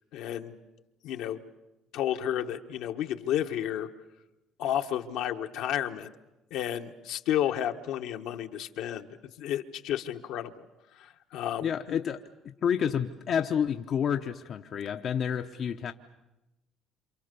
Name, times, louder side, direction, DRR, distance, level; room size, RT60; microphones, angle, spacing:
voice 1, 0.1-0.5 1.0-1.4 1.9-3.9 4.6-6.1 6.5-9.1 9.4-10.5 10.9-12.0, left 11 dB, 80° left, 1.3 m, -31 dB
voice 2, 11.6-12.2 12.6-15.9, left 8 dB, 55° left, 0.9 m, -29 dB
27.5 x 27.5 x 6.9 m
supercardioid pair, 80°, 0 cm